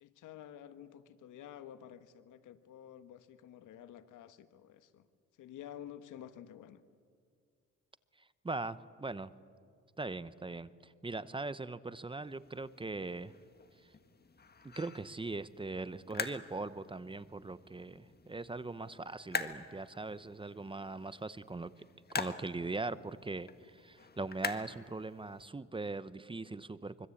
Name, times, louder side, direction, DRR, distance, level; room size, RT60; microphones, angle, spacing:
voice 1, 0.0-5.1 5.4-6.8, left 10 dB, 80° left, 11 dB, 1.4 m, -51 dB
voice 2, 8.2-9.3 10.0-13.3 13.8-13.9 14.6-21.7 22.1-27.1, right 3 dB, 15° right, 15 dB, 0.9 m, -40 dB
sound 1, 12.3-25.5, left 5 dB, 30° left, 1.7 m, -45 dB
25.0 x 25.0 x 8.5 m, 2.1 s
cardioid pair, 90°, 30 cm